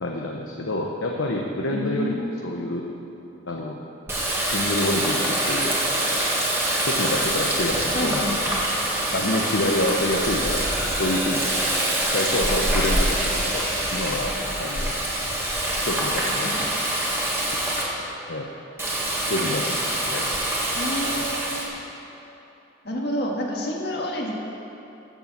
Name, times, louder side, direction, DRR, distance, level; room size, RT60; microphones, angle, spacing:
voice 1, 0.0-2.8 3.5-3.8 4.4-5.7 6.8-8.3 9.1-10.6 10.9-11.5 12.1-14.3 14.6-14.9 15.8-16.7 17.5-17.9 18.3-18.5 19.3-20.3 21.2-21.3, left 1 dB, 85° left, 0 dB, 1.0 m, -27 dB
voice 2, 1.7-2.5 7.9-8.6 16.3-16.7 20.7-21.5 22.8-24.3, equal, 55° left, -1 dB, 1.8 m, -29 dB
Water tap faucet, 4.1-17.8 18.8-21.6, right 1 dB, 15° right, 1.7 m, -25 dB
14.0 x 7.0 x 7.2 m, 2.9 s
head